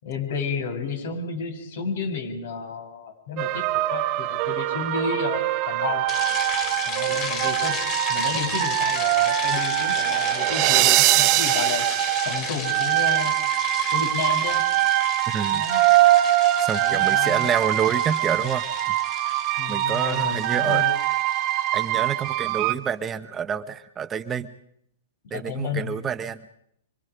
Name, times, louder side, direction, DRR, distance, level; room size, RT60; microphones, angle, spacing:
voice 1, 0.0-5.4 5.7-6.0 6.9-7.8 8.1-11.9 12.2-13.3 13.9-14.7 15.5-15.8 16.8-17.5 19.6-20.9 25.3-25.9, left 5 dB, 65° left, 5 dB, 7.1 m, -31 dB
sound 1, 3.4-22.7, right 15 dB, 35° right, 1.3 m, -23 dB
sound 2, 6.1-22.4, left 7 dB, 30° left, 4.7 m, -35 dB
voice 2, 15.3-15.6 16.6-19.0 19.7-20.8 21.7-24.5 25.3-26.4, right 7 dB, 20° right, 11 dB, 1.0 m, -28 dB
26.0 x 26.0 x 5.0 m, 0.72 s
hypercardioid pair, 140°, 0 cm